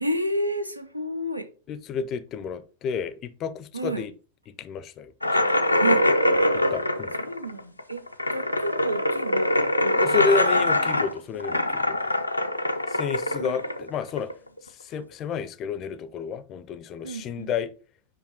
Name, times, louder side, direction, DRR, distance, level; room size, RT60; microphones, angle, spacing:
voice 1, 0.0-1.5 3.7-4.0 5.8-6.0 7.2-8.0 8.3-9.5 9.8-10.3 13.4-13.6 17.0-17.5, right 1 dB, 85° right, 0.7 m, -30 dB
voice 2, 1.7-4.1 4.6-5.4 6.5-7.1 9.9-12.0 12.9-14.3 14.8-17.7, left 6 dB, 35° left, 0.5 m, -30 dB
sound 1, 5.2-14.6, left 1 dB, 85° left, 0.6 m, -23 dB
5.1 x 5.0 x 4.4 m
figure-of-eight pair, 90°, 0 cm